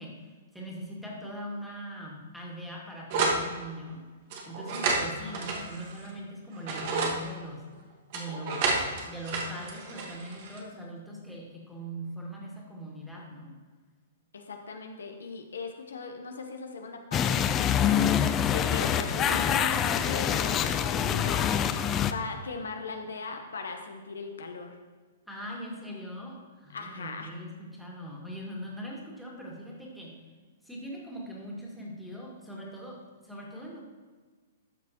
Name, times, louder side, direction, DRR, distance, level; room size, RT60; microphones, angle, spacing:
voice 1, 0.0-4.0 4.4-7.6 8.1-13.6 25.3-30.2 30.6-33.8, equal, ahead, -4 dB, 2.1 m, -41 dB
sound 1, 3.1-3.4 4.3-6.1 6.5-7.2 8.1-10.6, right 3 dB, 50° right, 1.5 m, -30 dB
voice 2, 14.3-17.9 18.5-21.5 22.0-24.8 26.7-27.3, left 4 dB, 80° left, 4 dB, 0.9 m, -39 dB
sound 2, 17.1-22.1, left 8 dB, 25° left, 0.4 m, -25 dB
12.0 x 6.1 x 3.0 m, 1.4 s
hypercardioid pair, 125°, 0 cm